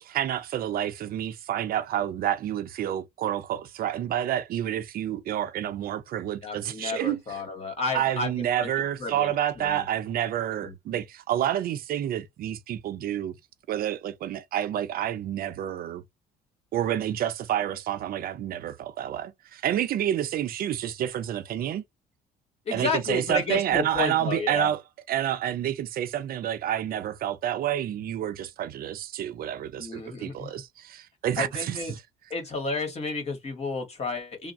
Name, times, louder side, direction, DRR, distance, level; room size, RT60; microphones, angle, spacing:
voice 1, 0.0-7.4 7.9-13.3 13.7-16.0 16.7-21.8 22.7-24.8 25.1-32.0, right 11 dB, 60° right, 0.6 m, -29 dB
voice 2, 6.4-8.7 9.0-9.9 10.5-10.7 22.7-24.7 29.8-30.5 31.4-32.0 32.3-34.5, left 4 dB, 40° left, 1.8 m, -32 dB
3.5 x 2.1 x 4.1 m
cardioid pair, 110°, 17 cm